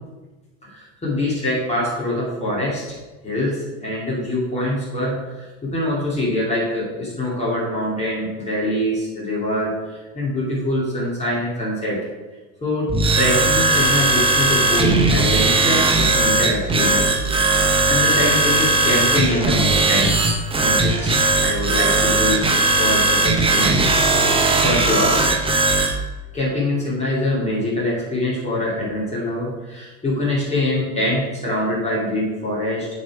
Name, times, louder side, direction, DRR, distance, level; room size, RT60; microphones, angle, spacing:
voice 1, 0.6-2.8 3.2-12.1 12.6-17.1 17.4-22.5 22.8-25.2 26.3-32.9, left 1 dB, 15° left, -6 dB, 2.6 m, -24 dB
sound 1, 12.9-25.9, right 2 dB, 10° right, 0.8 m, -18 dB
8.5 x 4.2 x 4.8 m, 1.2 s
hypercardioid pair, 105°, 46 cm